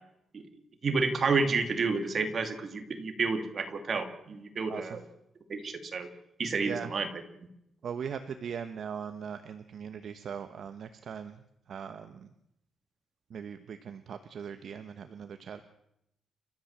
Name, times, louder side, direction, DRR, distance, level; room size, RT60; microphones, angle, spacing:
voice 1, 0.8-5.0 5.5-6.1 6.4-7.1, right 4 dB, 35° right, 6 dB, 2.6 m, -30 dB
voice 2, 7.8-11.3 11.7-12.3 13.3-15.6, right 7 dB, 50° right, 9 dB, 1.1 m, -39 dB
29.5 x 13.5 x 7.4 m, 0.80 s
wide cardioid pair, 175°, 0 cm